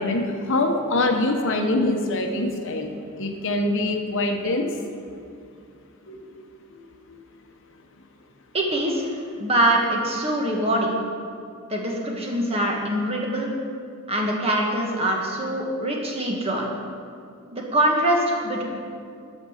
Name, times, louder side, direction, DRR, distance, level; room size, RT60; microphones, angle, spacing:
voice 1, 0.0-4.7 6.1-6.2 6.7-7.2, left 2 dB, 55° left, 4 dB, 0.9 m, -24 dB
voice 2, 8.5-10.9 11.7-13.5 14.1-16.7 17.5-18.6, right 1 dB, 25° right, -1 dB, 1.3 m, -23 dB
12.0 x 5.3 x 6.4 m, 2.4 s
head